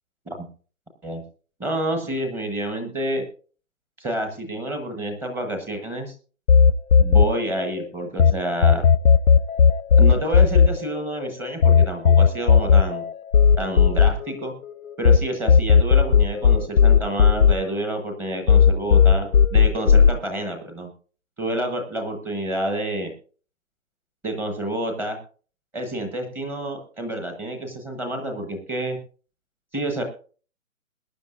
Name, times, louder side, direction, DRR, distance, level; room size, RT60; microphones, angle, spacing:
voice 1, 1.6-3.3 4.0-6.1 7.0-8.8 10.0-13.0 13.6-14.5 15.0-20.9 21.4-23.1 24.2-25.2 25.7-29.0 29.7-30.0, right 1 dB, 5° right, 4 dB, 1.0 m, -28 dB
sound 1, 6.5-8.3 8.6-15.2 15.5-18.2 18.5-20.1, left 6 dB, 80° left, 1.0 m, -15 dB
20.5 x 10.5 x 2.5 m, 0.39 s
hypercardioid pair, 155°, 41 cm